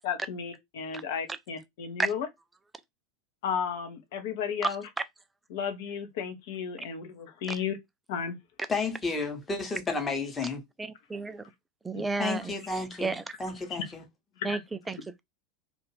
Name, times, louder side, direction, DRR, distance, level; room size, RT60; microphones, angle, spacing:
voice 1, 0.0-2.3 3.4-4.9 5.5-7.8 8.1-8.4 11.9-12.0 13.7-13.9 14.4-14.6, left 7 dB, 55° left, 0.7 m, -34 dB
voice 2, 8.7-10.6 12.2-14.0, left 3 dB, 20° left, 0.9 m, -32 dB
voice 3, 10.8-11.4 11.8-12.5 13.0-13.2 14.4-15.0, right 3 dB, 10° right, 0.3 m, -31 dB
2.5 x 2.5 x 3.1 m
figure-of-eight pair, 85°, 0 cm